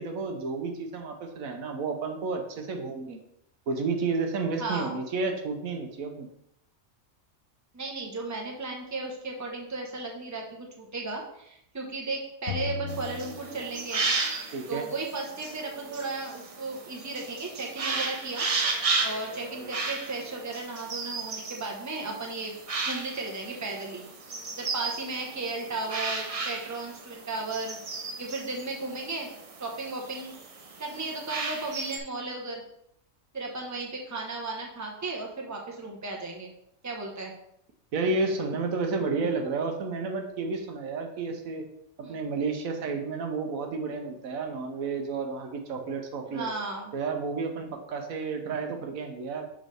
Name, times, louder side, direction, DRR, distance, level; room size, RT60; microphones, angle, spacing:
voice 1, 0.0-3.2 3.7-6.3 14.5-14.9 37.9-41.7 42.0-46.5 46.9-49.5, right 4 dB, 75° right, 4 dB, 1.2 m, -31 dB
voice 2, 4.6-5.0 7.7-14.0 14.7-18.5 19.0-22.5 22.9-24.1 24.5-27.8 28.2-29.3 29.6-30.3 30.8-32.6 33.3-36.5 36.8-37.3 42.0-42.2 46.3-46.9, right 3 dB, 15° right, 0 dB, 0.9 m, -35 dB
sound 1, 12.5-14.3, left 6 dB, 70° left, 1.3 m, -37 dB
sound 2, 12.9-32.0, right 3 dB, 45° right, 0.4 m, -34 dB
6.3 x 5.3 x 3.4 m, 0.76 s
omnidirectional pair, 1.5 m